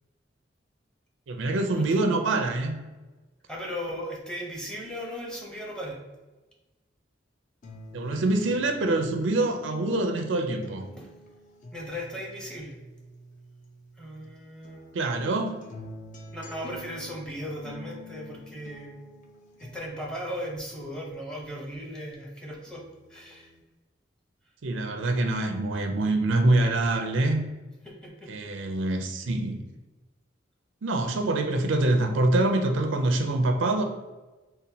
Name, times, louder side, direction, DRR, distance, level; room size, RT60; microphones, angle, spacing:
voice 1, 1.3-2.8 7.9-10.9 14.9-15.6 24.6-27.4 28.3-29.6 30.8-33.8, right 2 dB, 85° right, 5 dB, 0.4 m, -25 dB
voice 2, 3.5-6.0 11.0-11.1 11.7-12.8 14.0-15.0 16.3-19.0 19.6-22.8 23.1-23.5 27.8-28.3, equal, 5° left, -3 dB, 0.6 m, -37 dB
sound 1, 7.6-14.3 14.6-22.3 22.7-23.6, left 1 dB, 40° left, 0.4 m, -48 dB
4.0 x 2.2 x 2.7 m, 1.2 s
head